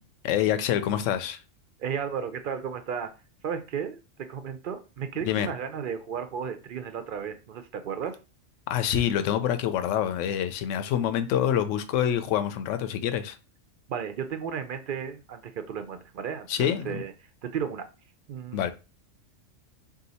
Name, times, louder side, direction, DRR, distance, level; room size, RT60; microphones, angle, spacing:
voice 1, 0.2-1.4 5.2-5.5 8.7-13.4 16.5-17.0 18.5-18.7, left 10 dB, 75° left, 0.9 m, -26 dB
voice 2, 1.8-3.1 3.4-8.2 13.9-17.1 17.4-17.8 18.3-18.7, right 7 dB, 60° right, 0.5 m, -34 dB
3.7 x 2.8 x 4.0 m
omnidirectional pair, 1.3 m